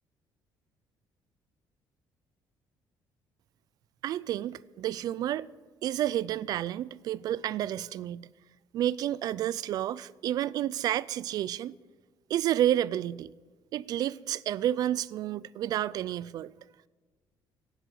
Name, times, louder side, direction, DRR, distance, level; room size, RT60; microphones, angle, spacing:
voice 1, 4.0-5.5 5.8-8.3 8.7-11.7 12.3-13.3 13.7-16.5, right 12 dB, 55° right, 0.4 m, -30 dB
17.5 x 8.1 x 7.7 m
cardioid pair, 165°, 8 cm